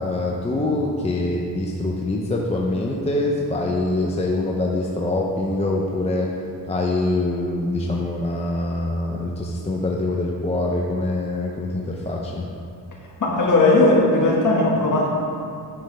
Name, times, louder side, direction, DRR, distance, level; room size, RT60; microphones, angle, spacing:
voice 1, 0.0-6.3 6.7-12.5, left 2 dB, 15° left, -1 dB, 0.5 m, -24 dB
voice 2, 13.2-15.1, left 2 dB, 45° left, -3 dB, 1.7 m, -17 dB
8.8 x 7.6 x 3.4 m, 2.4 s
wide cardioid pair, 140°, 42 cm